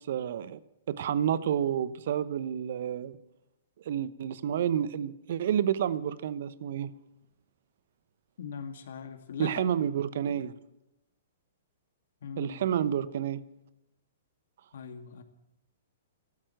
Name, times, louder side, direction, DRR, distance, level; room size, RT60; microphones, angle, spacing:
voice 1, 0.1-0.6 0.9-3.2 3.8-6.9 9.4-10.5 12.4-13.4, right 9 dB, 60° right, 16 dB, 0.9 m, -29 dB
voice 2, 8.4-9.7 12.2-12.6 14.7-15.2, left 6 dB, 65° left, 7 dB, 2.1 m, -40 dB
14.5 x 12.5 x 7.8 m, 0.91 s
hypercardioid pair, 115°, 0 cm